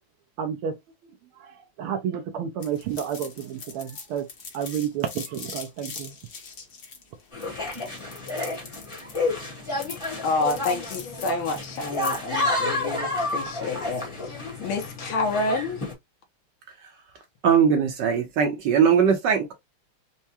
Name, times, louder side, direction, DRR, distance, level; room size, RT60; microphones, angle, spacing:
voice 1, 0.4-0.7 1.4-4.3 4.5-6.1, right 8 dB, 80° right, 1.5 m, -30 dB
sound 1, 2.6-12.3, left 5 dB, 55° left, 0.7 m, -42 dB
sound 2, 7.3-15.9, left 2 dB, 20° left, 1.0 m, -30 dB
voice 2, 10.2-15.8, left 3 dB, 80° left, 1.7 m, -28 dB
voice 3, 17.4-19.5, right 7 dB, 65° right, 1.3 m, -20 dB
4.6 x 2.2 x 2.7 m
omnidirectional pair, 2.4 m